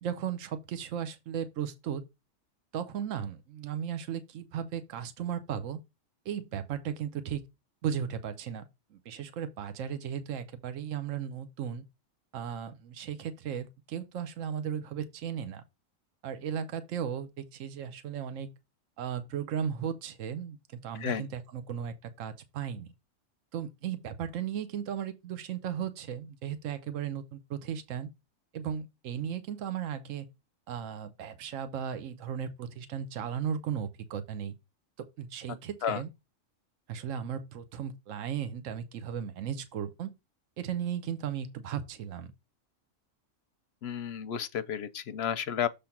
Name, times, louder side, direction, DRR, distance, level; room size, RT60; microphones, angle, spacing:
voice 1, 0.0-2.0 2.7-5.8 6.2-7.4 7.8-11.8 12.3-15.6 16.2-18.5 19.0-22.9 23.5-28.1 28.5-30.3 30.7-34.5 35.0-36.1 36.9-40.1 40.6-42.3, right 8 dB, 75° right, 1.2 m, -36 dB
voice 2, 20.9-21.3 35.8-36.0 43.8-45.7, left 8 dB, 65° left, 0.7 m, -32 dB
6.9 x 3.3 x 5.7 m
omnidirectional pair, 1.4 m